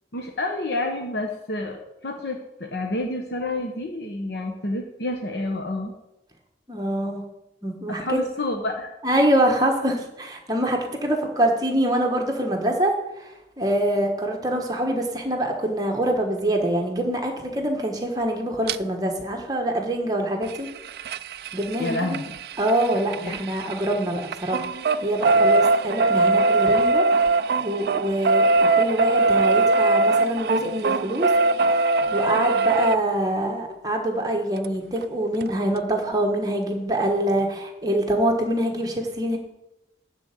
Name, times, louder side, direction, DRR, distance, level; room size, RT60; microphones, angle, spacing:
voice 1, 0.1-5.9 7.9-8.9 21.8-22.3 22.9-23.4, left 2 dB, 75° left, 3 dB, 1.1 m, -29 dB
voice 2, 6.7-7.2 7.6-8.2 9.0-13.3 13.6-20.7 21.5-22.2 22.6-24.6 25.0-27.0 27.3-31.3 32.1-39.4, right 1 dB, 20° right, 2 dB, 1.3 m, -25 dB
sound 1, 18.7-18.8 20.4-23.9 24.2-33.0 34.6-34.7 35.0-35.1 35.4-35.5, right 3 dB, 60° right, 0.3 m, -21 dB
12.5 x 4.3 x 8.3 m, 0.94 s
head